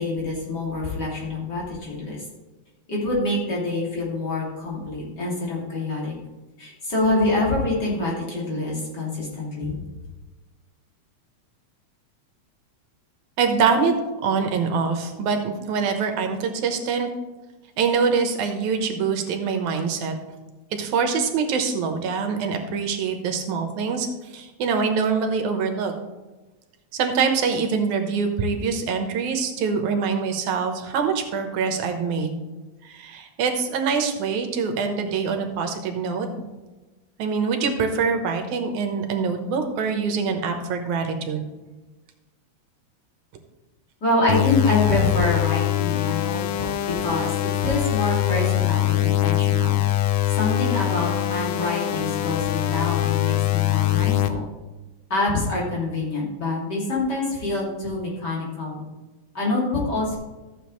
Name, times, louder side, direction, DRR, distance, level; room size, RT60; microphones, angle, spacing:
voice 1, 0.0-2.2 2.9-6.1 6.6-9.8 44.0-49.8 50.4-54.4 55.1-58.8 59.3-60.2, left 2 dB, 35° left, -4 dB, 3.0 m, -26 dB
voice 2, 13.4-13.9 14.2-17.1 17.8-20.1 20.7-24.1 24.3-25.9 26.9-32.4 32.8-36.3 37.2-41.5, right 5 dB, 85° right, 5 dB, 2.5 m, -24 dB
sound 1, 44.3-54.3, left 15 dB, 80° left, 1.2 m, -23 dB
14.0 x 7.8 x 3.2 m, 1.2 s
omnidirectional pair, 3.3 m